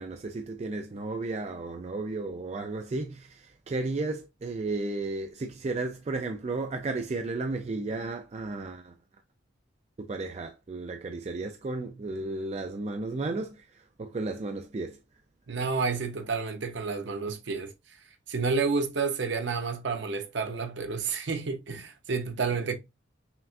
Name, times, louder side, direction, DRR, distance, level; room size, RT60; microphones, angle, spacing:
voice 1, 0.0-9.0 10.0-15.0, right 3 dB, 35° right, 0.3 m, -34 dB
voice 2, 15.5-17.7 18.3-22.7, right 4 dB, 65° right, 0.7 m, -30 dB
5.7 x 2.3 x 2.4 m
head